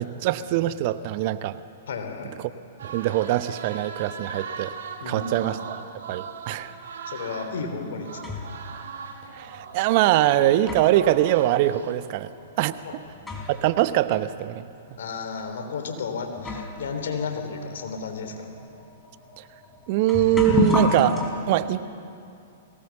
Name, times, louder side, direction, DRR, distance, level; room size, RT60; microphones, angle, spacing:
voice 1, 0.0-1.6 2.8-4.7 5.1-5.8 6.1-6.7 9.3-12.3 12.6-12.7 13.5-14.7 19.4-19.5 19.9-21.2 21.5-21.9, right 14 dB, 50° right, 13 dB, 0.9 m, -23 dB
voice 2, 1.9-2.3 5.0-5.5 7.1-8.2 12.8-13.0 15.0-18.5, left 5 dB, 65° left, 5 dB, 3.4 m, -33 dB
sound 1, 2.8-10.3 10.9-11.9, right 5 dB, 70° right, 2.4 m, -39 dB
sound 2, 7.5-8.6 9.6-9.7 10.3-13.7 14.0-14.1 15.0-15.1 15.9-16.0 16.4-21.3, left 3 dB, 10° left, 3.9 m, -30 dB
22.5 x 18.5 x 7.1 m, 2.5 s
hypercardioid pair, 110°, 0 cm